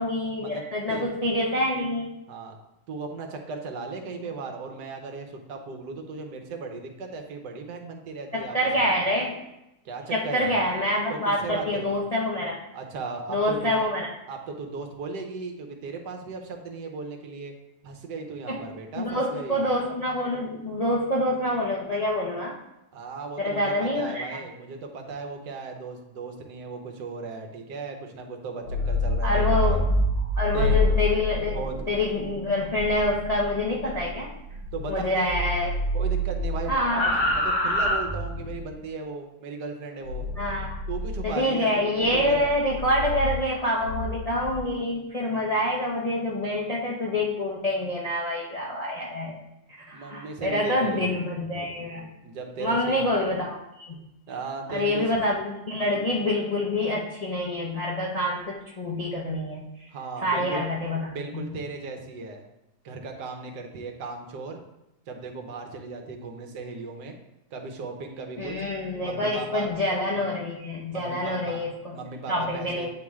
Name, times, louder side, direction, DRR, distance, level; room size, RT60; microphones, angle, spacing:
voice 1, 0.0-2.2 8.3-9.4 10.1-12.6 13.3-14.1 18.5-18.6 19.0-22.6 23.4-24.4 29.2-29.9 30.4-31.6 31.9-34.3 34.9-35.7 36.7-37.0 40.4-40.8 41.2-49.4 49.9-52.1 52.6-54.0 54.7-59.9 60.2-61.0 61.3-61.4 68.4-72.0 72.3-72.9, left 1 dB, 45° left, -5 dB, 0.5 m, -26 dB
voice 2, 2.9-8.9 9.8-10.6 11.1-12.0 12.7-13.8 14.3-17.5 17.8-19.6 22.9-29.8 30.5-30.8 31.5-31.8 34.7-35.4 35.9-36.7 37.3-40.3 40.9-41.8 42.1-42.4 49.9-51.2 52.2-53.1 54.3-55.2 59.9-60.6 61.1-62.4 62.8-64.6 65.1-67.2 67.5-68.6 69.0-69.7 70.9-71.7 71.9-72.9, right 4 dB, 80° right, 3 dB, 1.4 m, -36 dB
sound 1, 28.5-35.0 35.2-38.7 40.1-41.3 42.0-44.6, left 1 dB, 75° left, 1.8 m, -27 dB
8.7 x 3.1 x 3.6 m, 0.89 s
omnidirectional pair, 1.8 m